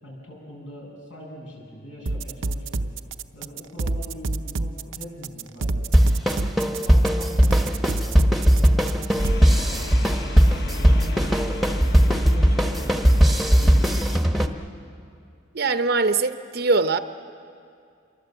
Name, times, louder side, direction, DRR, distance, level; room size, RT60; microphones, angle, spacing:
voice 1, 0.0-2.9 3.3-6.1 6.5-10.2 10.5-11.8 12.1-14.4, equal, 80° left, 8.0 m, -41 dB
sound 1, 2.1-9.3, right 2 dB, 90° right, 0.7 m, -28 dB
sound 2, 5.9-14.5, equal, ahead, 1.0 m, -19 dB
sound 3, 9.2-14.2, equal, 55° left, 1.4 m, -30 dB
voice 2, 15.5-17.0, right 3 dB, 55° right, 0.7 m, -22 dB
27.0 x 23.0 x 8.0 m
head